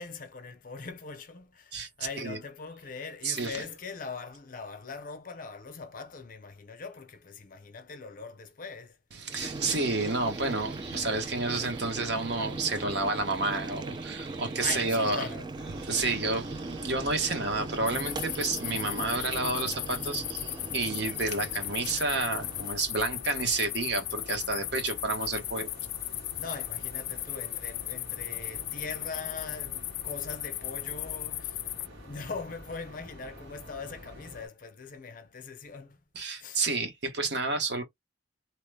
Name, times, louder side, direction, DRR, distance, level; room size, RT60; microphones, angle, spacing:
voice 1, 0.0-9.0 9.3-9.8 14.6-15.5 26.4-31.6 32.0-36.0 36.4-36.6, left 4 dB, 45° left, 0.6 m, -41 dB
voice 2, 3.2-3.7 9.1-15.3 15.8-25.7 36.1-37.8, right 3 dB, 60° right, 1.0 m, -30 dB
Boiling, 9.3-22.8, right 2 dB, 25° right, 0.3 m, -40 dB
sound 1, 15.6-34.5, equal, 85° right, 1.6 m, -47 dB
sound 2, 17.9-31.9, left 17 dB, 85° left, 0.3 m, -36 dB
2.9 x 2.1 x 3.2 m
head